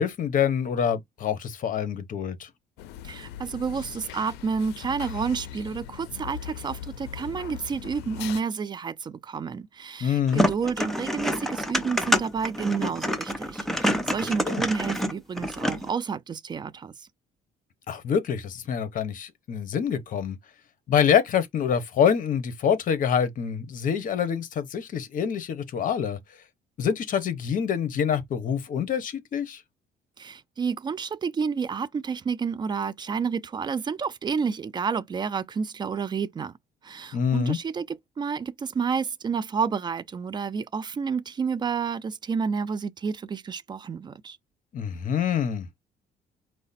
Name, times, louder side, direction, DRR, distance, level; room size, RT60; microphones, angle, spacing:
voice 1, 0.0-2.5 10.0-10.5 14.5-14.6 17.9-20.4 20.9-26.2 26.8-29.6 37.1-37.6 44.7-45.7, left 8 dB, 50° left, 0.9 m, -26 dB
sound 1, 2.8-8.4, left 10 dB, 85° left, 0.4 m, -40 dB
voice 2, 3.0-17.1 30.2-36.5 36.8-44.4, right 5 dB, 25° right, 0.4 m, -30 dB
sound 2, 10.3-15.9, equal, ahead, 0.7 m, -27 dB
4.8 x 2.2 x 4.1 m
cardioid pair, 110°, 17 cm